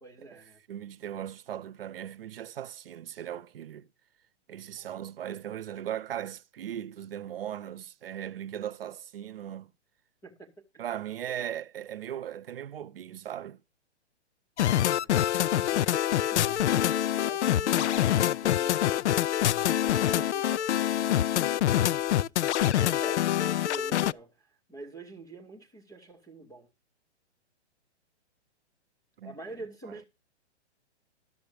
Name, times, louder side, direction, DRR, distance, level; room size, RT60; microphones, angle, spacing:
voice 1, 0.0-0.6 4.8-5.1 10.2-10.9 14.6-26.7 29.2-30.0, right 2 dB, 5° left, 0.5 m, -47 dB
voice 2, 0.7-3.9 4.5-9.7 10.8-13.6 29.2-29.3, right 10 dB, 55° right, 0.8 m, -38 dB
sound 1, 14.6-24.1, left 12 dB, 75° left, 0.5 m, -25 dB
12.5 x 6.9 x 5.0 m
hypercardioid pair, 170°, 35 cm